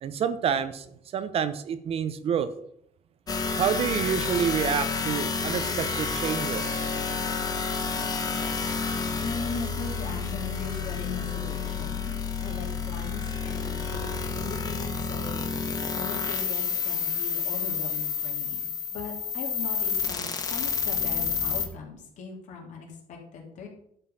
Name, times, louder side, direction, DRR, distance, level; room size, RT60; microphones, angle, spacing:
voice 1, 0.0-0.9 1.1-2.5 3.6-6.8, right 8 dB, 45° right, 12 dB, 0.8 m, -28 dB
sound 1, 3.3-21.7, left 5 dB, 25° left, 1.2 m, -30 dB
voice 2, 9.2-12.1 12.4-23.7, left 4 dB, 60° left, 0 dB, 3.1 m, -39 dB
11.0 x 5.5 x 5.7 m, 0.69 s
cardioid pair, 150°, 14 cm